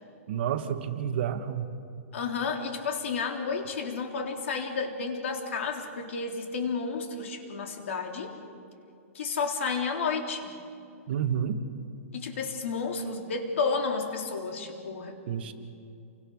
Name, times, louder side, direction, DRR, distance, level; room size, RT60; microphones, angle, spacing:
voice 1, 0.3-1.7 11.1-11.6 15.3-15.5, right 9 dB, 45° right, 7 dB, 1.6 m, -29 dB
voice 2, 2.1-8.4 9.1-10.6 12.1-15.2, left 5 dB, 55° left, 3 dB, 3.6 m, -31 dB
29.5 x 24.0 x 6.5 m, 2.5 s
hypercardioid pair, 175°, 8 cm